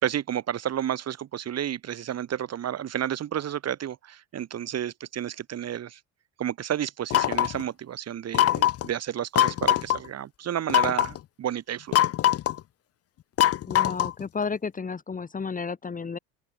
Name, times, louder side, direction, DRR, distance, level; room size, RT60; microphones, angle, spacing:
voice 1, 0.0-6.0 6.4-12.0, right 10 dB, 40° right, 3.3 m, -31 dB
sound 1, 7.1-7.6 8.3-8.9 9.4-10.0 10.7-11.2 11.9-12.6 13.4-14.2, left 12 dB, 40° left, 1.0 m, -22 dB
voice 2, 13.7-16.2, left 5 dB, 20° left, 2.2 m, -32 dB
open air
supercardioid pair, 105°, 38 cm